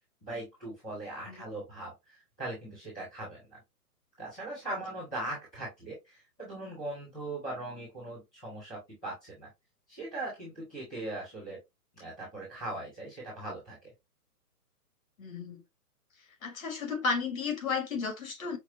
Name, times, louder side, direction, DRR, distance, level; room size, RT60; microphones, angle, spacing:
voice 1, 0.2-3.6 4.2-9.5 9.9-11.6 11.9-13.8, right 2 dB, ahead, 0.5 m, -40 dB
voice 2, 15.2-15.6 16.4-18.6, left 4 dB, 60° left, 2.0 m, -33 dB
5.9 x 2.2 x 3.0 m
hypercardioid pair, 160°, 47 cm